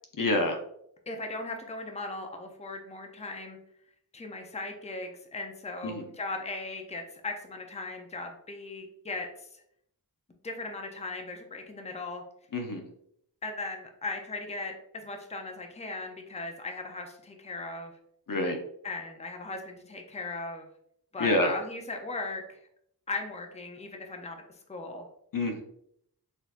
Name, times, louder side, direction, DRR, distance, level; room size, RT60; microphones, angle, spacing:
voice 1, 0.2-0.6 5.8-6.0 12.5-12.8 18.3-18.6 21.2-21.5 25.3-25.6, left 2 dB, 60° left, 4 dB, 0.7 m, -27 dB
voice 2, 1.1-3.6 4.1-9.5 10.4-12.2 13.4-17.9 18.8-20.7 21.1-22.6 23.1-24.4 24.7-25.1, left 3 dB, 15° left, 4 dB, 0.6 m, -38 dB
4.2 x 2.8 x 2.5 m, 0.70 s
wide cardioid pair, 55°, 38 cm